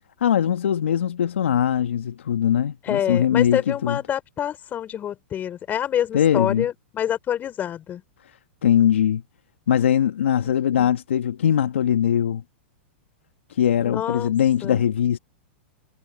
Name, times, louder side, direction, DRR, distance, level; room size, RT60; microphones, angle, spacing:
voice 1, 0.2-4.0 6.1-6.7 8.6-9.2 9.7-12.4 13.5-15.2, left 9 dB, 80° left, 1.4 m, -21 dB
voice 2, 2.8-8.0 10.4-10.9 13.8-14.3 14.6-14.8, left 10 dB, 30° left, 3.7 m, -27 dB
hypercardioid pair, 115°, 7 cm